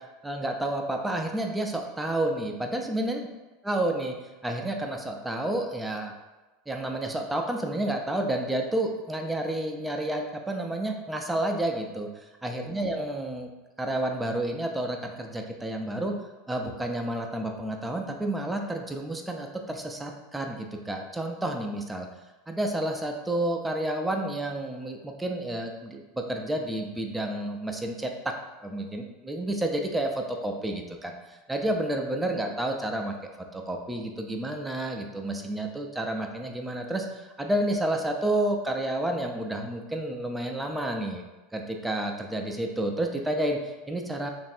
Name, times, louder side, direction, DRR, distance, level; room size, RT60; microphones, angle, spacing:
voice 1, 0.2-3.3 3.6-4.2 4.4-6.1 6.7-13.5 13.8-16.1 16.5-22.1 22.5-28.3 28.6-41.2 41.5-44.3, right 1 dB, 10° right, 2 dB, 0.5 m, -30 dB
3.1 x 2.5 x 4.3 m, 1.2 s
hypercardioid pair, 90°, 0 cm